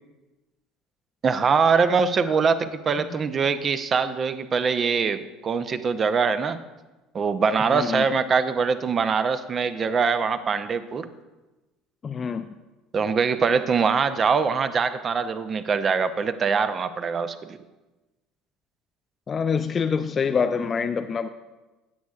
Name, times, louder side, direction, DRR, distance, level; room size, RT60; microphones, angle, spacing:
voice 1, 1.2-6.6 7.1-11.1 12.9-17.6, right 5 dB, 35° right, 12 dB, 0.7 m, -23 dB
voice 2, 7.7-8.0 12.0-12.5 19.3-21.3, left 6 dB, 35° left, 7 dB, 0.4 m, -25 dB
16.5 x 8.2 x 2.4 m, 1.1 s
figure-of-eight pair, 65°, 0 cm